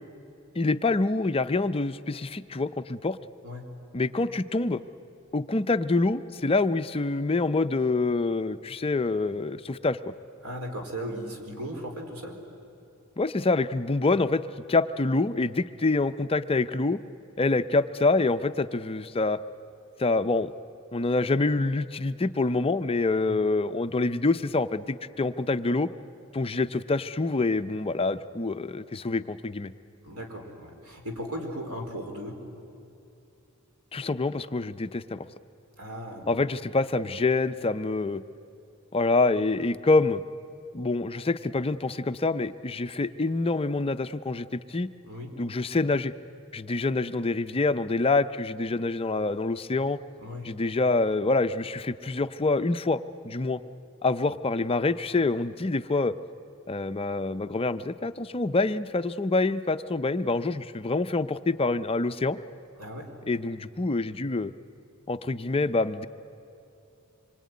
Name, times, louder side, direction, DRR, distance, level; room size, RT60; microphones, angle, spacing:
voice 1, 0.6-3.2 3.9-4.8 5.3-10.0 13.2-14.4 14.7-17.0 17.4-19.4 20.0-20.5 20.9-25.9 26.3-29.7 33.9-35.3 36.3-38.2 38.9-40.2 40.7-44.9 45.4-46.1 46.5-50.0 50.4-53.6 54.0-56.1 56.7-62.4 63.3-64.5 65.1-66.1, left 3 dB, 25° left, 11 dB, 0.5 m, -26 dB
voice 2, 10.4-12.4 23.2-23.4 30.0-32.4 35.8-36.2 45.0-45.3 50.2-50.4 62.8-63.1, equal, 80° right, 3 dB, 4.4 m, -37 dB
26.0 x 23.5 x 9.5 m, 2.8 s
head